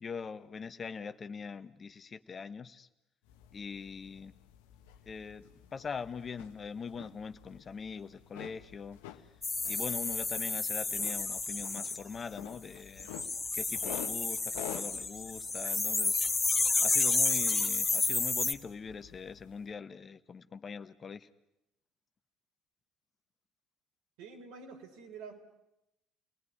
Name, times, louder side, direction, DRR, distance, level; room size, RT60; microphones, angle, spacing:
voice 1, 0.0-2.9 3.5-4.3 5.0-5.4 5.7-9.0 9.7-13.1 13.5-16.2 16.8-21.3, left 5 dB, 40° left, 10 dB, 1.4 m, -42 dB
sound 1, 3.3-19.7, left 11 dB, 80° left, 1.4 m, -50 dB
sound 2, 9.4-12.0 13.0-18.5, left 3 dB, 20° left, 2.4 m, -31 dB
voice 2, 24.2-25.5, right 5 dB, 75° right, 2 dB, 5.1 m, -48 dB
30.0 x 20.0 x 9.9 m, 0.88 s
hypercardioid pair, 60°, 0 cm